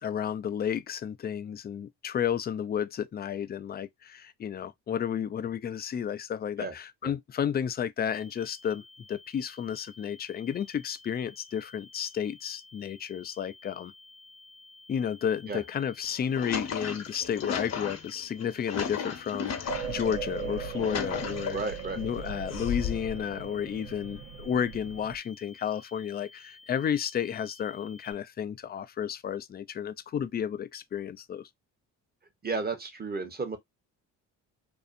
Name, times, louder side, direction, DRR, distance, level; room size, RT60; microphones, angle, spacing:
voice 1, 0.0-13.9 14.9-21.6 22.0-31.5, left 8 dB, 30° left, 0.4 m, -32 dB
sound 1, 8.1-28.1, left 3 dB, 70° left, 0.6 m, -54 dB
sound 2, 16.0-20.1 20.6-21.8 22.5-23.2, left 7 dB, 45° left, 0.8 m, -35 dB
sound 3, 19.7-25.2, right 6 dB, 85° right, 0.8 m, -38 dB
voice 2, 21.5-22.0 32.4-33.6, right 4 dB, 25° right, 1.0 m, -33 dB
2.6 x 2.4 x 2.5 m
supercardioid pair, 60°, 36 cm